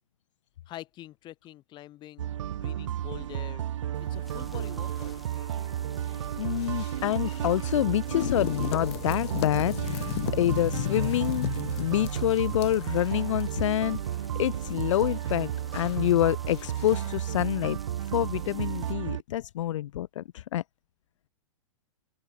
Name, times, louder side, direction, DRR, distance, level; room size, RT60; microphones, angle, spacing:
voice 1, 0.7-3.6 4.0-5.2, left 14 dB, 30° left, 2.7 m, -45 dB
sound 1, 2.2-19.2, right 11 dB, 75° right, 1.1 m, -33 dB
sound 2, 4.0-17.2, left 16 dB, 55° left, 1.3 m, -38 dB
sound 3, 4.2-18.9, equal, ahead, 8.0 m, -56 dB
voice 2, 6.4-11.5 11.8-14.0 14.4-17.8 18.1-20.6, left 13 dB, 75° left, 0.4 m, -27 dB
hypercardioid pair, 135°, 16 cm